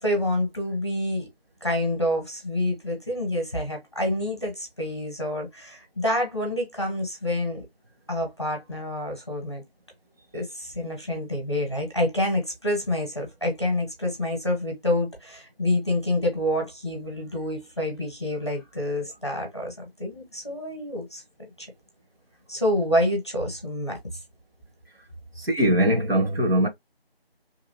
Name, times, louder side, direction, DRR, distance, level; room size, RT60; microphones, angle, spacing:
voice 1, 0.0-1.3 1.6-7.6 8.1-9.6 10.3-19.7 20.0-21.2 21.6-21.7 22.5-24.0, left 1 dB, 25° left, 0.8 m, -27 dB
voice 2, 25.4-26.7, equal, 70° right, 1.2 m, -21 dB
2.9 x 2.3 x 2.6 m
figure-of-eight pair, 170°, 31 cm